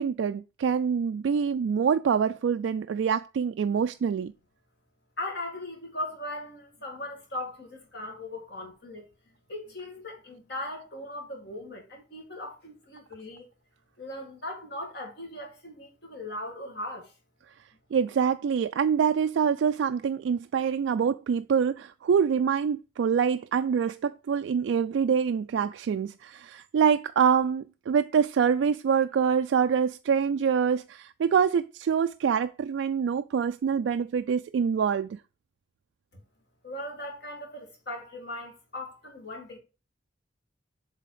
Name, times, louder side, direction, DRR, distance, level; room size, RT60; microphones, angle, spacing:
voice 1, 0.0-4.3 17.9-35.2, right 7 dB, 80° right, 0.3 m, -25 dB
voice 2, 5.2-9.1 9.5-13.5 14.0-17.1 36.1-36.2 36.6-39.6, left 1 dB, 60° left, 2.4 m, -38 dB
7.6 x 3.5 x 4.9 m
head